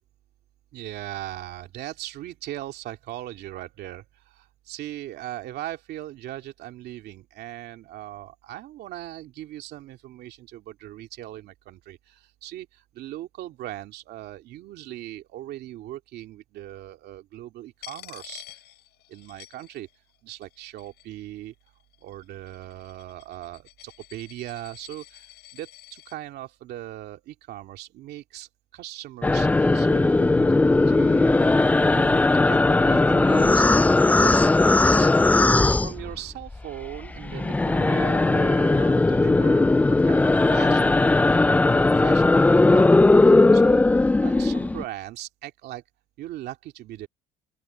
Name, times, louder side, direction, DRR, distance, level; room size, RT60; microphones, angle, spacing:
voice 1, 0.7-18.6 19.1-19.9 20.2-21.5 22.0-35.1 35.4-42.9 43.2-45.8 46.2-47.1, right 14 dB, 75° right, 2.5 m, -39 dB
Coin (dropping), 17.8-20.1 20.4-21.2 21.9-26.2, left 15 dB, 80° left, 6.3 m, -48 dB
sound 1, 29.2-36.6 36.8-44.8, left 2 dB, 10° left, 0.4 m, -18 dB
open air
cardioid pair, 110°, 17 cm